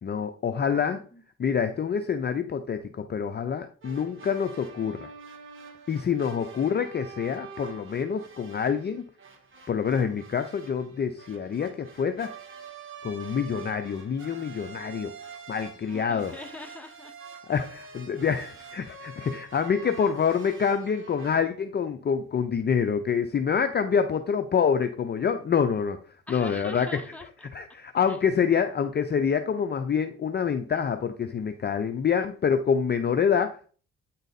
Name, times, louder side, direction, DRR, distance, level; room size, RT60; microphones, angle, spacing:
voice 1, 0.0-1.0 1.4-5.1 5.9-9.0 9.7-12.3 13.0-15.1 15.5-16.3 17.5-26.0 26.3-27.0 27.5-33.5, left 7 dB, 35° left, 8 dB, 0.6 m, -26 dB
voice 2, 0.7-1.2 15.9-17.1 26.3-27.5 28.1-28.2, left 2 dB, 5° left, 5 dB, 1.2 m, -42 dB
sound 1, 3.8-21.4, right 5 dB, 40° right, 1.7 m, -46 dB
9.1 x 4.0 x 4.0 m, 0.42 s
cardioid pair, 90°, 30 cm